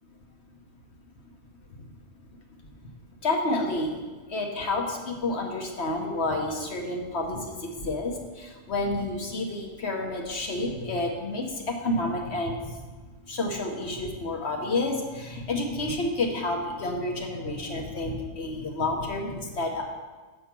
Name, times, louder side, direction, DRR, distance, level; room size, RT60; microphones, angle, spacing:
voice 1, 3.2-4.0 4.3-12.6 13.3-19.8, left 2 dB, 50° left, 1 dB, 1.2 m, -29 dB
7.6 x 5.5 x 6.0 m, 1.3 s
omnidirectional pair, 1.5 m